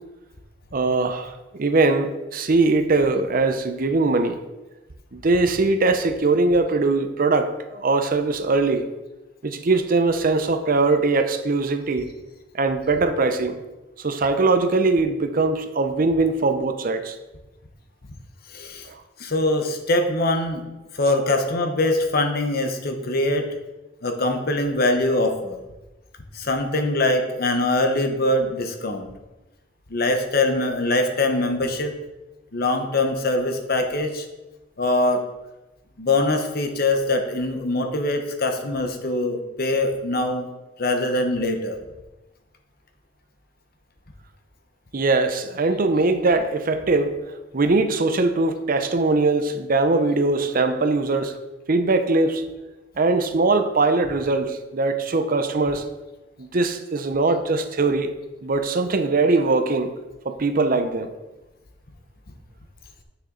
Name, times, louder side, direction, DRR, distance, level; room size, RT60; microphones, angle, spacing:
voice 1, 0.7-4.4 5.1-8.8 9.4-12.1 12.5-13.6 14.0-17.2 18.9-19.0 44.9-47.2 47.5-51.3 51.7-52.4 53.0-55.9 56.4-58.1 58.4-59.9 60.2-61.1, right 3 dB, 50° right, 8 dB, 0.7 m, -21 dB
voice 2, 18.5-18.9 19.2-20.7 20.9-23.5 24.0-25.6 26.3-29.1 29.9-31.9 32.5-34.3 34.8-35.2 36.0-40.5 40.8-41.8, left 2 dB, 55° left, 5 dB, 1.0 m, -23 dB
9.3 x 6.4 x 3.9 m, 1.1 s
head